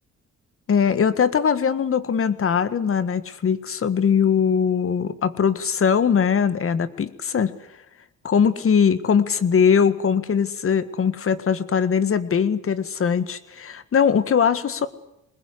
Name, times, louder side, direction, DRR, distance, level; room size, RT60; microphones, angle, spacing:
voice 1, 0.7-7.5 8.2-14.9, left 7 dB, 45° left, 14 dB, 1.7 m, -21 dB
21.5 x 20.5 x 9.9 m, 0.87 s
cardioid pair, 90°, 30 cm